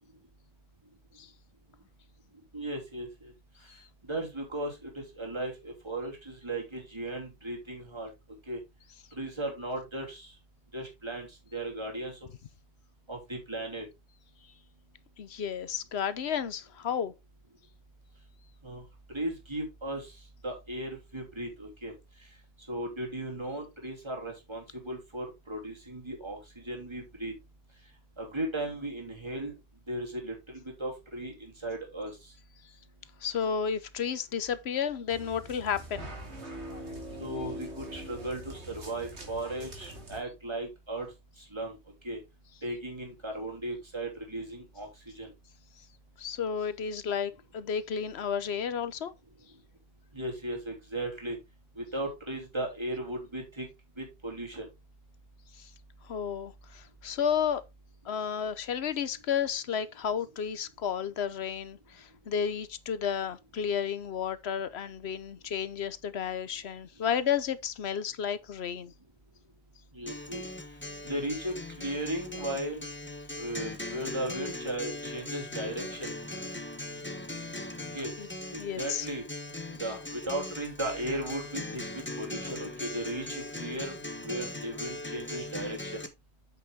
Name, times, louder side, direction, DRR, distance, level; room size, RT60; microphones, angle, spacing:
voice 1, 2.5-3.1 4.1-4.7 5.2-8.1 8.5-8.6 9.2-10.3 10.7-11.3 11.5-12.1 13.1-13.8 18.6-18.8 19.1-20.1 20.4-21.9 22.7-26.4 26.7-27.3 28.2-29.5 29.9-32.1 37.2-41.1 41.5-41.7 42.0-42.2 42.6-44.9 45.2-45.3 50.1-51.4 51.8-53.7 54.0-54.7 69.9-70.4 71.1-72.8 73.4-76.1 77.9-78.1 78.5-79.2 79.8-83.9 84.2-85.8, right 1 dB, 25° right, 3.0 m, -36 dB
voice 2, 15.2-17.1 33.2-36.1 46.2-49.1 56.1-57.6 58.1-68.9 78.2-78.3 78.6-79.1, left 7 dB, 75° left, 1.1 m, -32 dB
sound 1, 35.1-40.2, right 1 dB, 85° right, 2.7 m, -42 dB
Acoustic guitar, 70.1-86.1, left 2 dB, 10° left, 1.0 m, -40 dB
8.2 x 6.3 x 3.5 m
omnidirectional pair, 1.1 m